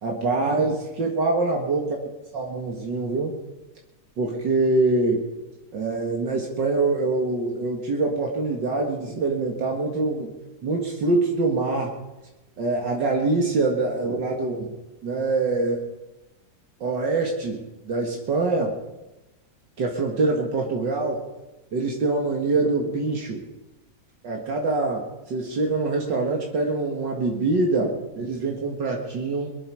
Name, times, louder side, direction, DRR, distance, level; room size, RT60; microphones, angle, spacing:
voice 1, 0.0-2.0 2.3-3.4 4.2-5.2 5.7-10.3 10.6-11.9 12.6-14.7 15.0-15.8 16.8-17.6 17.8-18.8 19.8-21.2 21.7-23.4 24.2-29.5, right 3 dB, 80° right, 0 dB, 2.5 m, -24 dB
23.0 x 11.5 x 4.9 m, 1.0 s
omnidirectional pair, 1.9 m